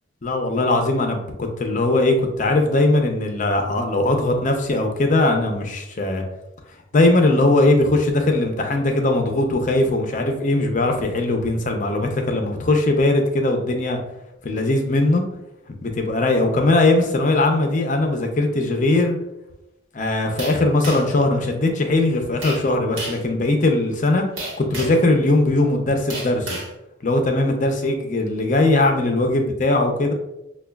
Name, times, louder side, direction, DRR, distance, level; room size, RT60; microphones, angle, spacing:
voice 1, 0.2-6.2 6.9-14.0 14.4-15.2 15.8-19.2 19.9-24.2 24.6-26.6 27.0-30.1, left 2 dB, 40° left, 4 dB, 0.5 m, -20 dB
sound 1, 20.4-21.2 22.4-22.7 23.0-23.3 24.4-25.1 26.1-26.7, right 1 dB, 80° right, 1.1 m, -31 dB
5.9 x 2.2 x 2.2 m, 0.91 s
head